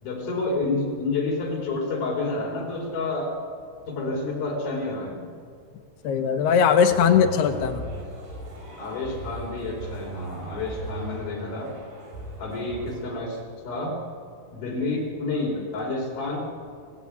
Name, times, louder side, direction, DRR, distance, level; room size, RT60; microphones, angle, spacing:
voice 1, 0.0-3.4 3.9-5.2 8.8-11.8 12.4-14.0 14.5-16.4, left 3 dB, 55° left, 0 dB, 5.7 m, -29 dB
voice 2, 6.0-7.9, left 7 dB, 70° left, 6 dB, 2.9 m, -20 dB
sound 1, 6.9-13.0, right 2 dB, 90° right, 8.7 m, -38 dB
27.5 x 16.0 x 9.6 m, 2.3 s
omnidirectional pair, 5.4 m